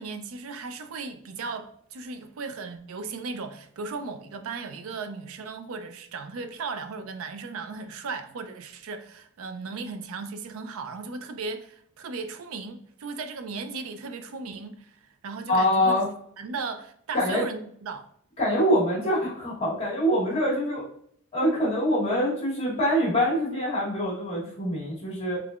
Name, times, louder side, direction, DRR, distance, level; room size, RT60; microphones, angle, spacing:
voice 1, 0.0-16.0 16.4-18.1, right 4 dB, 70° right, 0.4 m, -36 dB
voice 2, 15.5-16.1 17.1-17.4 18.4-20.8 21.3-25.4, equal, 30° left, 1.2 m, -24 dB
3.5 x 3.3 x 2.4 m
head